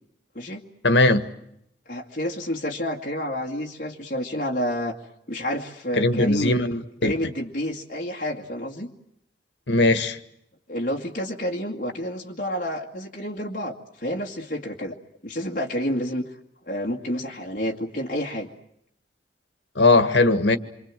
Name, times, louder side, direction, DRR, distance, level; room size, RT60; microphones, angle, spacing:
voice 1, 0.8-1.2 5.9-6.7 7.0-7.1 9.7-10.2 19.8-20.6, left 2 dB, 75° left, 1.8 m, -19 dB
voice 2, 1.9-5.0 5.3-8.9 10.7-14.9 15.2-16.3 16.7-18.5, equal, 45° left, 2.3 m, -29 dB
27.0 x 25.5 x 7.6 m
head